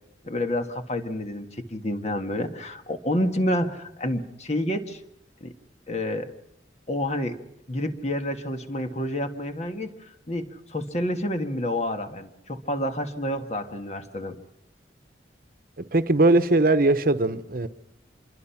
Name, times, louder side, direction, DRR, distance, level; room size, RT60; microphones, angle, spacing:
voice 1, 0.2-5.0 5.4-5.5 5.9-6.3 6.9-7.4 7.7-14.4, left 1 dB, 40° left, 1.6 m, -29 dB
voice 2, 15.8-17.7, right 2 dB, 55° right, 1.0 m, -20 dB
26.0 x 23.0 x 5.9 m
head